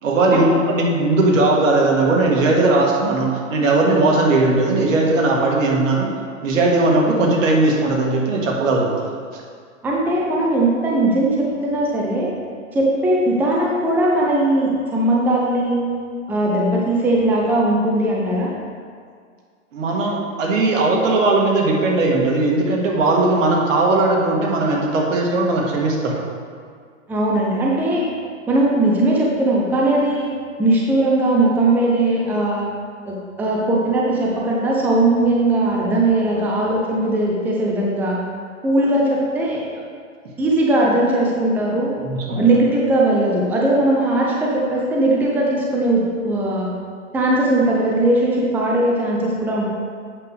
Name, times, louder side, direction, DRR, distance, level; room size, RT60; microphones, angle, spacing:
voice 1, 0.0-6.1 6.4-8.9 19.7-26.2 42.0-42.4, right 2 dB, 70° right, -1 dB, 1.8 m, -18 dB
voice 2, 9.8-12.3 12.7-15.9 16.3-18.5 27.1-28.1 28.5-30.3 30.6-32.6 33.1-38.2 38.6-39.6 40.4-41.9 42.4-46.7 47.1-49.7, right 1 dB, 5° right, -3 dB, 0.6 m, -19 dB
8.3 x 6.6 x 3.5 m, 2.1 s
hypercardioid pair, 135°, 40 cm